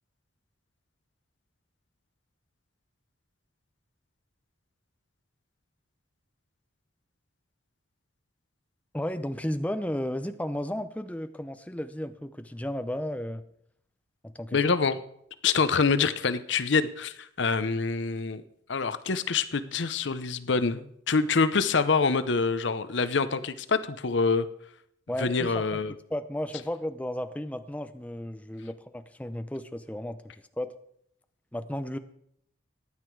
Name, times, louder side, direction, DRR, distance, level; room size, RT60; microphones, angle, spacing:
voice 1, 8.9-13.4 14.2-14.6 25.1-25.8 26.1-30.2 30.6-30.7 31.5-32.0, left 1 dB, 5° left, 10 dB, 0.6 m, -33 dB
voice 2, 14.5-15.0 15.4-18.4 18.7-24.5 25.2-25.9, left 4 dB, 65° left, 13 dB, 0.7 m, -26 dB
15.0 x 9.8 x 4.7 m, 0.72 s
head